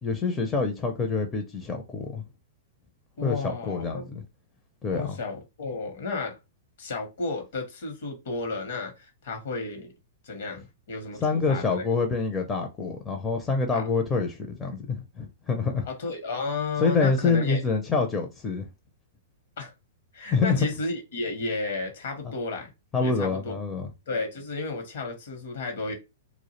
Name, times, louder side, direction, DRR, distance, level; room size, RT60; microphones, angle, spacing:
voice 1, 0.0-2.2 3.2-4.2 4.8-5.2 11.2-15.9 16.8-18.7 20.3-20.7 22.2-22.3 22.9-23.9, left 4 dB, 20° left, 0.5 m, -26 dB
voice 2, 3.2-4.1 4.9-6.4 6.8-9.9 10.2-11.9 13.7-13.9 15.9-17.6 19.6-19.7 20.1-22.7 23.0-23.6 24.1-25.9, left 3 dB, 65° left, 0.8 m, -33 dB
2.3 x 2.0 x 3.0 m
hypercardioid pair, 110°, 0 cm